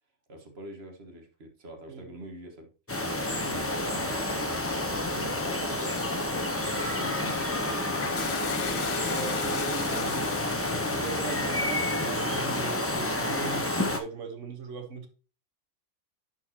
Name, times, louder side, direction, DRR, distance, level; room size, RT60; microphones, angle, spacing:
voice 1, 0.3-2.7 3.3-6.1 6.7-8.2, right 1 dB, 60° right, 1.7 m, -45 dB
sound 1, 2.9-14.0, left 1 dB, 15° left, 0.7 m, -29 dB
Toilet flush, 7.0-11.3, left 7 dB, 55° left, 0.9 m, -37 dB
voice 2, 9.1-10.3 10.9-15.1, right 5 dB, 80° right, 1.5 m, -40 dB
10.5 x 4.7 x 2.9 m
omnidirectional pair, 1.2 m